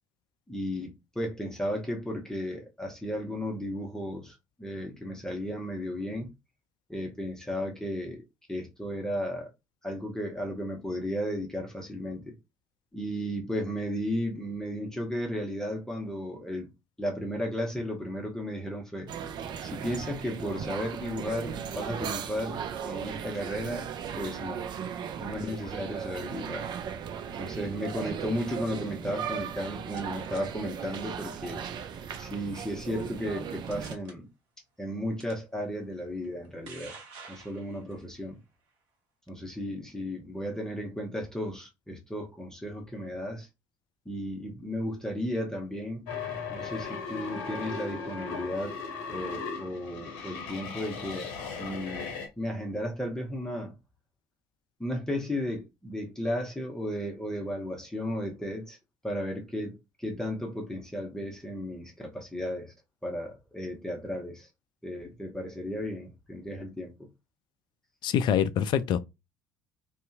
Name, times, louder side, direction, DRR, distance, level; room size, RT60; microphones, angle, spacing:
voice 1, 0.5-6.3 6.9-8.2 8.5-9.5 9.8-12.4 12.9-16.7 17.0-19.1 19.6-23.9 24.2-24.6 25.2-26.7 27.3-31.7 32.2-34.3 34.8-36.9 37.3-38.4 39.3-43.5 44.1-46.0 46.5-48.8 49.1-51.3 51.6-53.7 54.8-58.8 59.0-62.7 63.0-64.5 64.8-67.1, equal, 5° left, 1.0 m, -34 dB
sound 1, 19.1-34.0, right 7 dB, 50° right, 0.4 m, -37 dB
sound 2, 30.0-30.4 31.4-31.8 32.1-32.4 33.1-33.2 33.7-34.1 35.2-35.3 36.2-38.0, right 4 dB, 65° right, 0.9 m, -48 dB
sound 3, 46.1-52.3, left 5 dB, 70° left, 0.8 m, -37 dB
voice 2, 68.0-69.0, left 8 dB, 50° left, 0.3 m, -25 dB
2.7 x 2.3 x 2.4 m
hypercardioid pair, 55°, 10 cm